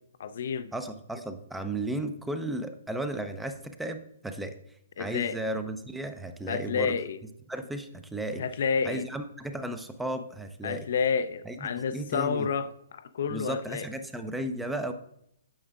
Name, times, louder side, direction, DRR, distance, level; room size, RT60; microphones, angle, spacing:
voice 1, 0.2-0.7 5.0-5.4 6.5-7.2 8.4-9.1 10.6-13.9, left 6 dB, 55° left, 11 dB, 0.4 m, -30 dB
voice 2, 0.7-4.5 5.0-6.9 7.5-8.4 8.8-10.9 11.5-12.5 13.3-14.9, right 1 dB, 5° right, 8 dB, 0.5 m, -34 dB
8.8 x 7.0 x 2.4 m, 0.74 s
figure-of-eight pair, 130°, 0 cm